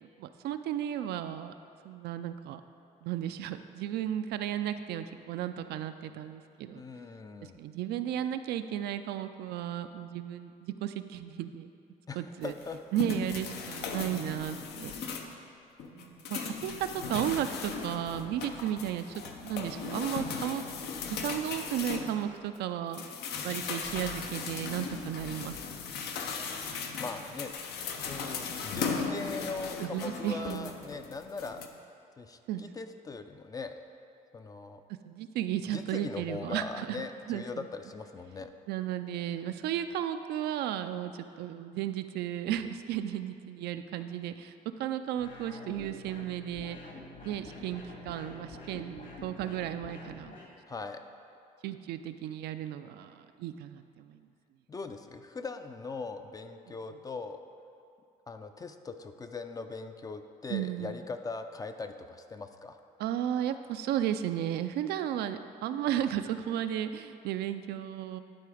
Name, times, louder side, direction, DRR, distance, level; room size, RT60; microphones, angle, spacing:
voice 1, 0.0-1.5 1.8-2.6 3.0-6.8 7.6-11.7 12.2-12.5 12.9-14.9 15.9-20.6 21.0-23.0 23.4-25.8 28.3-28.7 29.8-30.7 32.5-32.6 35.1-37.7 38.7-44.5 44.8-46.8 47.2-50.4 51.6-54.2 60.5-60.9 63.0-68.2, right 11 dB, 75° right, 9 dB, 0.4 m, -34 dB
voice 2, 6.7-7.6 12.1-12.8 27.0-27.5 27.9-31.6 32.2-33.7 34.3-34.8 35.7-38.5 50.7-51.1 54.7-57.4 58.3-62.8, left 4 dB, 20° left, 8 dB, 0.4 m, -40 dB
sound 1, 12.4-15.4 15.8-22.6 22.9-31.7, left 5 dB, 75° left, 0.7 m, -37 dB
sound 2, 45.2-50.5, left 2 dB, 55° left, 1.7 m, -47 dB
11.5 x 3.9 x 4.9 m, 2.5 s
cardioid pair, 110°, 17 cm